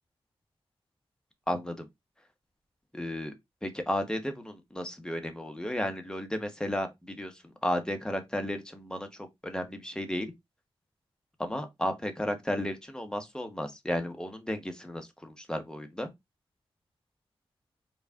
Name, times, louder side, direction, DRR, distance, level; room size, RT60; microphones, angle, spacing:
voice 1, 1.5-1.9 2.9-3.3 3.6-9.1 9.4-10.3 11.4-16.1, left 1 dB, 5° left, 0.9 m, -33 dB
4.6 x 2.4 x 3.5 m
wide cardioid pair, 125°, 10 cm